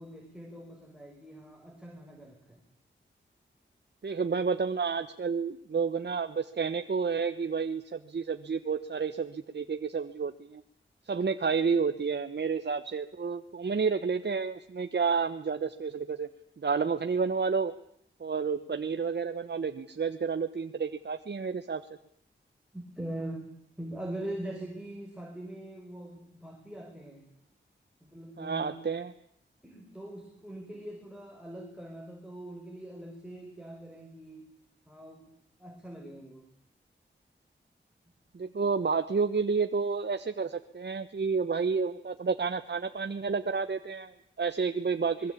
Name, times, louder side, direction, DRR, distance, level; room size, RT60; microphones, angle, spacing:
voice 1, 0.0-2.6 22.7-23.5 23.8-27.3 28.0-28.8 29.6-34.5 34.9-36.5 45.2-45.3, right 1 dB, 5° right, 2 dB, 6.1 m, -42 dB
voice 2, 4.0-10.6 11.1-16.3 16.6-17.7 18.2-21.8 28.4-29.1 38.3-45.3, right 5 dB, 60° right, 9 dB, 1.2 m, -30 dB
26.0 x 22.0 x 8.5 m, 0.68 s
cardioid pair, 60°, 20 cm